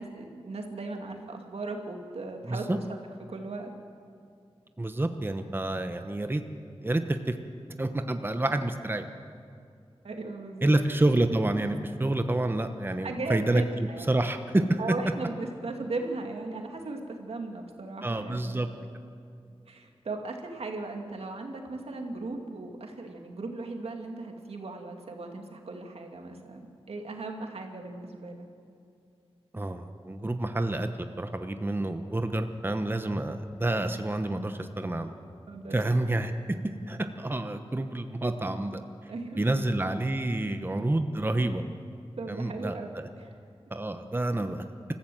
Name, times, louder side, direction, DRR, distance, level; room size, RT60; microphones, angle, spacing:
voice 1, 0.0-2.7 3.3-3.7 10.0-10.8 13.0-14.1 14.8-18.7 19.7-28.5 35.5-35.8 36.2-36.3 39.1-39.7 42.2-42.9 43.2-43.3, right 3 dB, 85° right, 3 dB, 2.3 m, -37 dB
voice 2, 2.4-2.8 4.8-6.4 6.8-7.3 7.8-9.0 10.6-14.8 18.0-18.7 29.5-30.9 31.2-35.1 35.7-36.3 36.9-38.8 39.4-41.6 42.3-43.1 43.7-44.6, right 2 dB, 20° right, 7 dB, 1.0 m, -28 dB
25.0 x 14.5 x 7.8 m, 2.4 s
wide cardioid pair, 80°, 10 cm